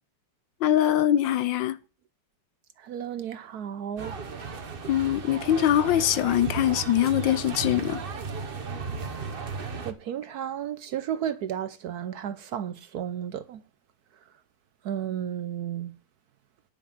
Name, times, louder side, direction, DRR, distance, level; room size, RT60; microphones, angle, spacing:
voice 1, 0.6-1.8 4.9-8.0, left 11 dB, 75° left, 1.4 m, -23 dB
voice 2, 2.8-4.2 9.8-13.6 14.8-16.0, right 9 dB, 65° right, 1.0 m, -33 dB
sound 1, 4.0-9.9, right 4 dB, 40° right, 0.9 m, -35 dB
10.5 x 5.4 x 7.1 m
omnidirectional pair, 2.1 m